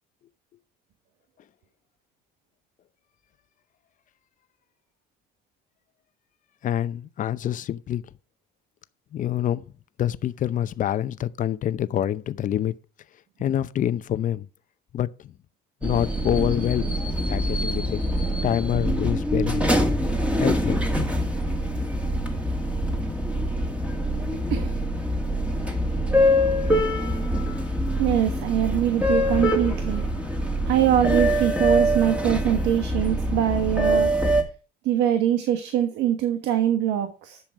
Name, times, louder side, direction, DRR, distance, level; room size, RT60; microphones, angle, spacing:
voice 1, 6.6-8.0 9.1-9.6 10.0-12.7 13.4-14.5 14.9-15.1 15.8-17.0 17.3-18.0 18.4-19.8 20.4-20.8, left 11 dB, 50° left, 0.7 m, -26 dB
sound 1, 15.8-34.4, equal, 5° right, 2.2 m, -24 dB
voice 2, 28.0-30.0 30.7-34.2 34.8-37.4, right 10 dB, 90° right, 1.3 m, -23 dB
10.5 x 7.0 x 4.8 m
cardioid pair, 110°, 17 cm